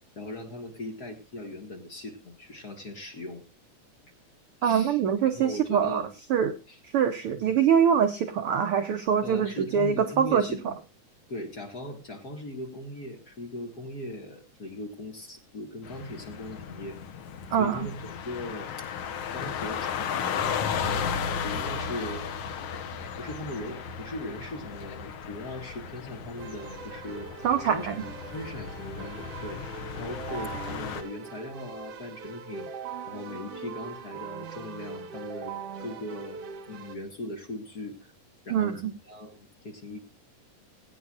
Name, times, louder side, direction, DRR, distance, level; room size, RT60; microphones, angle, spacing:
voice 1, 0.1-3.4 4.6-6.1 6.7-6.8 7.4-7.5 9.2-10.8 11.3-17.0 17.6-18.8 19.3-22.2 23.2-27.3 27.6-29.6 30.0-32.7 33.1-35.5 35.8-36.4 36.7-38.1 38.4-40.0, left 1 dB, 40° left, 2 dB, 1.7 m, -39 dB
voice 2, 4.6-6.0 6.3-6.5 6.9-10.7 17.5-17.9 27.4-27.9 38.5-38.9, right 8 dB, 75° right, 7 dB, 1.3 m, -24 dB
sound 1, 15.8-31.0, left 7 dB, 65° left, 1.7 m, -35 dB
Keyboard (musical), 26.3-37.0, right 6 dB, 60° right, 1.9 m, -41 dB
21.5 x 9.2 x 2.4 m, 0.27 s
omnidirectional pair, 3.5 m